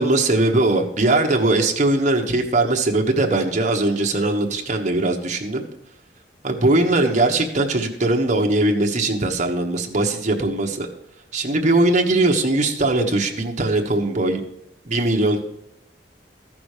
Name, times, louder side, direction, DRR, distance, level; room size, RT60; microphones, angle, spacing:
voice 1, 0.0-5.6 6.4-10.9 11.3-14.4 14.8-15.4, right 2 dB, 40° right, 2 dB, 1.2 m, -20 dB
13.5 x 6.1 x 4.9 m, 0.80 s
head